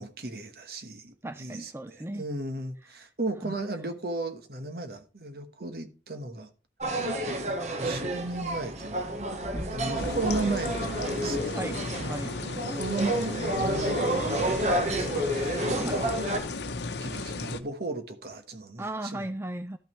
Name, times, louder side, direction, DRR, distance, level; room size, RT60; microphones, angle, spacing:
voice 1, 0.0-6.5 7.8-9.1 9.7-11.8 12.5-16.4 17.0-19.3, right 2 dB, 60° right, 1.2 m, -35 dB
voice 2, 1.2-2.2 3.4-3.6 9.5-10.0 11.5-12.4 15.8-16.1 18.8-19.8, right 1 dB, 15° right, 0.4 m, -37 dB
sound 1, 6.8-16.4, right 1 dB, 40° right, 1.1 m, -30 dB
sound 2, 10.0-17.6, left 3 dB, 75° left, 0.9 m, -35 dB
12.5 x 6.0 x 3.1 m
head